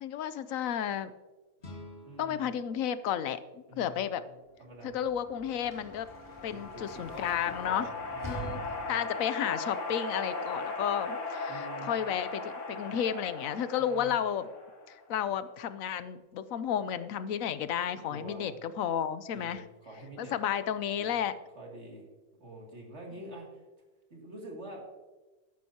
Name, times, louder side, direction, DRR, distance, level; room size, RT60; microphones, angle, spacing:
voice 1, 0.0-1.1 2.2-3.4 3.8-4.2 4.8-6.1 6.4-7.9 8.2-8.6 8.9-14.5 14.9-19.6 20.2-21.3, left 9 dB, 90° left, 13 dB, 1.1 m, -32 dB
sound 1, 1.6-4.6, left 2 dB, 45° left, 1.9 m, -52 dB
voice 2, 2.1-2.5 3.7-4.0 4.6-5.0 6.5-8.9 11.5-12.0 13.8-14.2 18.1-18.6 19.3-20.3 20.9-21.2 21.5-22.1 22.4-23.6 24.1-24.8, right 1 dB, 55° right, -1 dB, 2.8 m, -46 dB
Sliding door / Slam, 4.5-9.3, right 2 dB, 15° right, 2.7 m, -46 dB
sound 2, 5.6-15.1, left 3 dB, 65° left, 2.0 m, -38 dB
13.5 x 11.0 x 2.9 m, 1.2 s
omnidirectional pair, 1.4 m